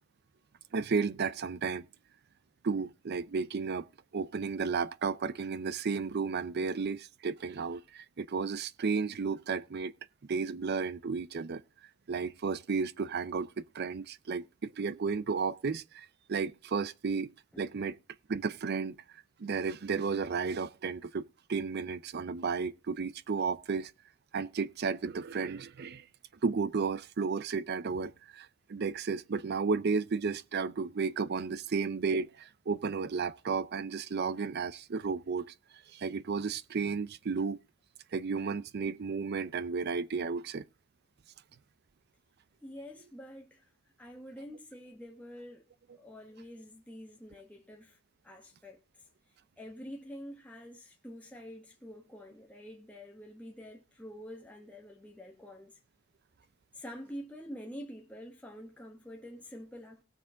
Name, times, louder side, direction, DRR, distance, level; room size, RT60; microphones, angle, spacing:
voice 1, 0.7-1.9 2.6-3.8 4.1-9.9 10.3-11.6 12.1-17.3 17.6-18.0 18.3-19.0 19.4-23.9 24.3-26.0 26.4-35.5 35.9-37.6 38.1-40.6, right 5 dB, 50° right, 0.5 m, -33 dB
voice 2, 42.6-43.7 44.0-45.7 46.0-48.0 48.2-48.8 49.6-55.8 56.7-60.0, equal, 5° left, 1.2 m, -47 dB
18.5 x 6.8 x 3.7 m
head